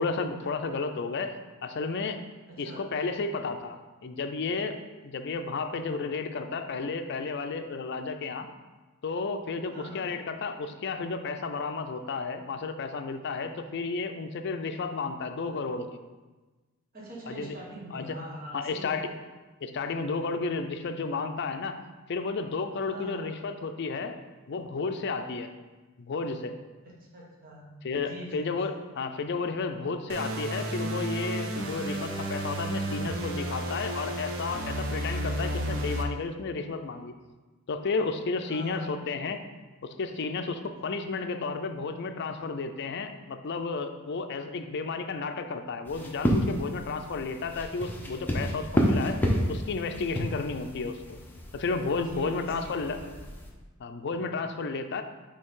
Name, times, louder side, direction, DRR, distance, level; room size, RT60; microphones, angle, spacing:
voice 1, 0.0-2.2 2.6-3.8 4.0-4.8 5.0-8.5 9.0-15.9 17.3-17.6 17.9-18.2 18.5-19.1 19.6-21.8 22.1-24.2 24.5-25.5 26.0-26.5 27.8-37.1 37.7-39.4 39.8-51.2 51.5-53.0 53.8-55.0, left 4 dB, 55° left, 7 dB, 0.5 m, -32 dB
voice 2, 2.5-2.8 9.7-10.1 16.9-19.0 22.8-23.4 26.8-27.7 28.0-28.6 38.5-38.9 52.0-53.1, right 1 dB, 45° right, -4 dB, 1.4 m, -42 dB
sound 1, 30.1-36.0, right 1 dB, 65° right, 0.7 m, -32 dB
sound 2, 45.8-53.5, equal, 10° left, 0.7 m, -31 dB
7.8 x 3.4 x 3.7 m, 1.2 s
head